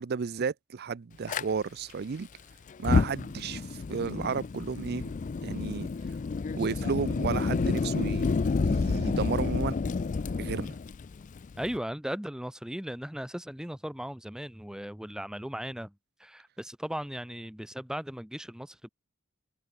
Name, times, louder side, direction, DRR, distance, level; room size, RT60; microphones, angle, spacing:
voice 1, 0.0-2.3 2.8-5.1 5.4-5.9 6.5-9.8 10.4-10.8, right 5 dB, 50° right, 0.5 m, -33 dB
Fire, 1.3-1.4 2.7-11.8, left 4 dB, 35° left, 0.4 m, -29 dB
voice 2, 11.6-15.9 16.2-18.9, equal, 5° right, 0.7 m, -37 dB
head